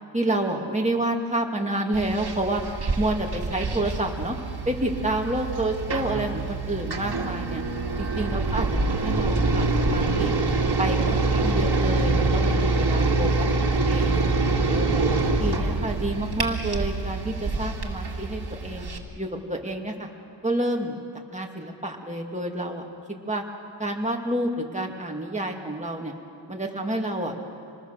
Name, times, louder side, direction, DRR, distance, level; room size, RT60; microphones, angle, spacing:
voice 1, 0.1-2.6 3.0-4.4 4.7-7.6 8.2-10.4 10.8-13.5 13.9-14.2 14.7-18.9 19.2-20.1 20.4-21.0 21.3-23.4 23.8-26.1 26.5-27.3, right 1 dB, 15° right, 1 dB, 2.5 m, -29 dB
sound 1, 1.9-19.0, right 3 dB, 60° right, 2.3 m, -25 dB
26.0 x 20.5 x 6.8 m, 2.9 s
wide cardioid pair, 85°, 44 cm